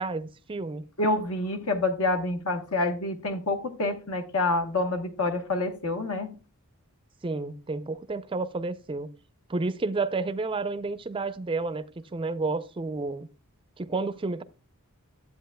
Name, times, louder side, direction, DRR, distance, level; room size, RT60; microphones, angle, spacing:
voice 1, 0.0-0.8 7.2-9.1 9.5-13.3 13.8-14.4, right 3 dB, 25° right, 0.4 m, -31 dB
voice 2, 1.0-6.3, left 2 dB, 70° left, 1.1 m, -27 dB
12.5 x 8.2 x 2.2 m
head